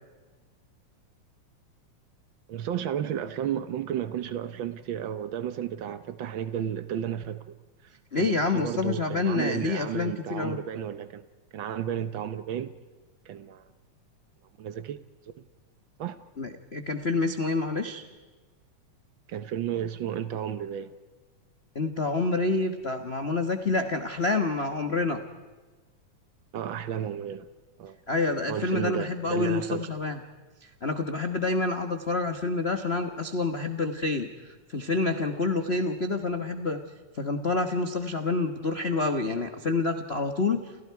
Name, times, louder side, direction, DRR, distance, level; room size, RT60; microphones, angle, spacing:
voice 1, 2.5-7.5 7.8-11.2 11.5-12.7 13.2-13.7 14.6-15.3 16.0-16.2 19.3-20.9 26.5-27.5 27.8-28.0 28.5-29.9, right 9 dB, 90° right, 12 dB, 1.0 m, -33 dB
voice 2, 8.1-10.6 16.4-18.0 21.7-25.2 28.1-30.2 30.8-34.3 34.7-36.8 37.2-40.7, left 3 dB, 85° left, 6 dB, 0.5 m, -27 dB
29.5 x 29.0 x 4.7 m, 1.3 s
omnidirectional pair, 3.4 m